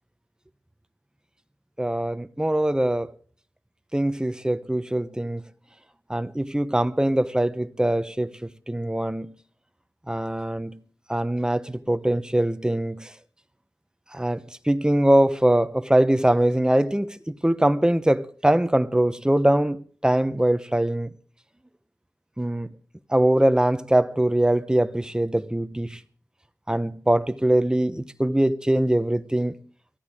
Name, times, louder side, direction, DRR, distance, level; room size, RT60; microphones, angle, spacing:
voice 1, 1.8-3.1 3.9-5.4 6.1-9.3 10.1-10.8 11.1-13.1 14.1-21.1 22.4-22.7 23.1-26.0 26.7-29.5, right 1 dB, 10° right, 0.9 m, -22 dB
23.0 x 14.5 x 3.6 m
wide cardioid pair, 65°, 7 cm